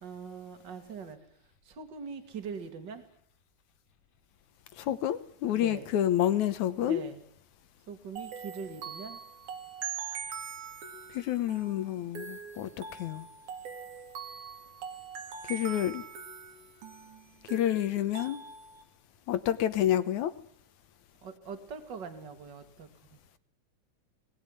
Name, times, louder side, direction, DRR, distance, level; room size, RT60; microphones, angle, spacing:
voice 1, 0.0-3.0 5.5-5.9 6.7-7.2 7.9-9.2 21.2-23.2, right 5 dB, 35° right, 7 dB, 2.8 m, -42 dB
voice 2, 4.8-7.0 11.1-13.3 15.5-16.0 17.4-18.4 19.3-20.3, left 11 dB, 70° left, 12 dB, 2.4 m, -29 dB
sound 1, 8.2-18.8, right 7 dB, 70° right, 3.7 m, -42 dB
21.0 x 20.5 x 9.9 m, 0.66 s
omnidirectional pair, 3.6 m